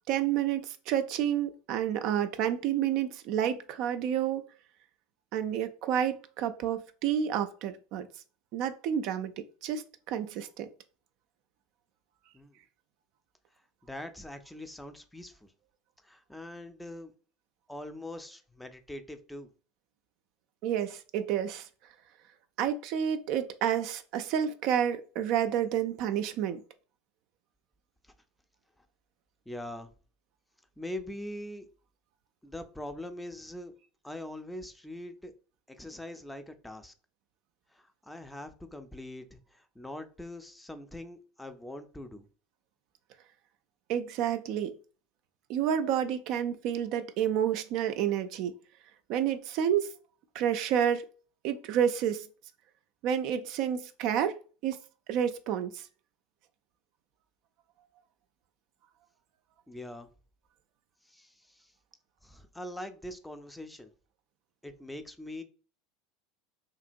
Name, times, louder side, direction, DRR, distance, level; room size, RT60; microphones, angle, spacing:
voice 1, 0.1-4.4 5.3-8.1 8.5-10.7 20.6-21.6 22.6-26.6 43.9-44.7 45.5-48.5 49.1-49.9 50.3-51.0 51.4-52.2 53.0-54.3 54.6-54.8 55.1-55.8, right 9 dB, 60° right, 0.3 m, -29 dB
voice 2, 13.8-15.5 16.0-17.1 17.7-19.5 28.0-28.1 28.8-28.9 29.5-29.9 30.8-31.7 32.4-33.7 34.0-35.3 35.7-36.9 37.7-42.3 59.7-60.1 61.0-61.7 62.2-63.9 64.6-65.4, left 1 dB, 5° left, 0.4 m, -43 dB
2.9 x 2.7 x 2.5 m
hypercardioid pair, 90°, 0 cm